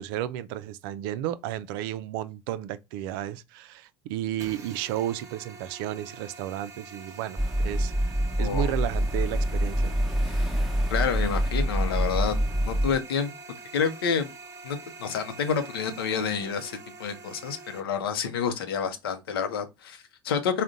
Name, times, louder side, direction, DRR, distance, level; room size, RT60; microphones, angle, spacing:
voice 1, 0.0-8.1 8.4-9.9, right 12 dB, 70° right, 0.4 m, -33 dB
sound 1, 4.4-17.8, right 4 dB, 25° right, 0.9 m, -45 dB
sound 2, 7.4-13.0, equal, ahead, 0.8 m, -26 dB
voice 2, 8.4-8.7 10.2-10.6 10.9-12.4 12.6-13.3 13.7-14.3 14.6-20.6, left 6 dB, 85° left, 0.6 m, -29 dB
3.7 x 2.2 x 3.6 m
hypercardioid pair, 65°, 12 cm